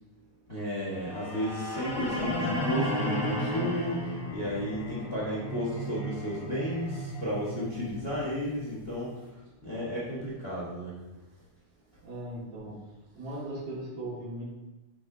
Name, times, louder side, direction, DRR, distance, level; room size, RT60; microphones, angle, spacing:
voice 1, 0.5-9.1 9.6-10.9, equal, 60° left, -7 dB, 0.6 m, -33 dB
sound 1, 0.9-9.0, left 1 dB, 20° left, 1.5 m, -34 dB
voice 2, 5.0-5.4 12.0-12.7 13.1-14.5, right 1 dB, 75° right, -9 dB, 3.2 m, -38 dB
9.8 x 3.5 x 3.7 m, 1.0 s
omnidirectional pair, 3.7 m